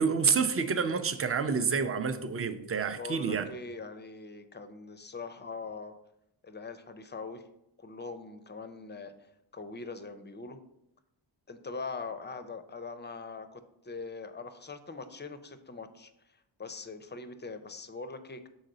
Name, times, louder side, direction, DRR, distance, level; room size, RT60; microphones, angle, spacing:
voice 1, 0.0-3.5, right 5 dB, 30° right, 9 dB, 0.5 m, -28 dB
voice 2, 3.0-6.0 6.4-7.5 7.8-9.1 9.5-10.6 11.5-16.1 16.6-18.5, left 4 dB, 25° left, 10 dB, 0.5 m, -42 dB
6.5 x 4.1 x 3.8 m, 0.82 s
wide cardioid pair, 105°, 48 cm